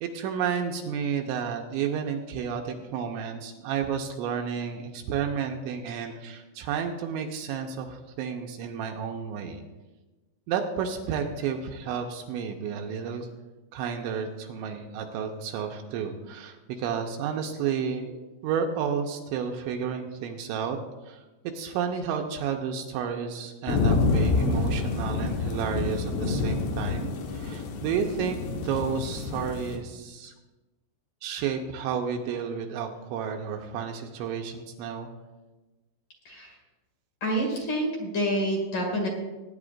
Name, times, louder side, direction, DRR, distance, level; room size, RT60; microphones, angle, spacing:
voice 1, 0.0-9.6 10.5-13.3 13.7-20.8 21.1-21.2 21.5-30.3 31.2-35.1, right 7 dB, 85° right, 3 dB, 2.9 m, -31 dB
sound 1, 23.7-29.8, left 3 dB, 70° left, 3.2 m, -27 dB
voice 2, 37.2-39.1, equal, 50° left, -1 dB, 2.9 m, -27 dB
21.0 x 10.0 x 2.5 m, 1.2 s
omnidirectional pair, 5.6 m